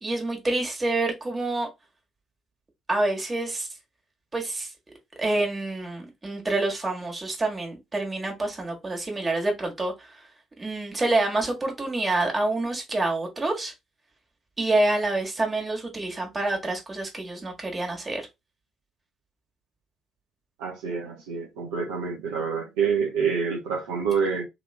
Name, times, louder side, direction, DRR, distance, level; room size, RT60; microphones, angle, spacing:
voice 1, 0.0-1.7 2.9-3.7 4.3-4.7 5.2-10.2 10.6-13.7 14.6-18.3, right 2 dB, 25° right, 1.3 m, -27 dB
voice 2, 20.6-24.4, right 6 dB, 70° right, 0.7 m, -27 dB
3.0 x 3.0 x 2.3 m
figure-of-eight pair, 45°, 0 cm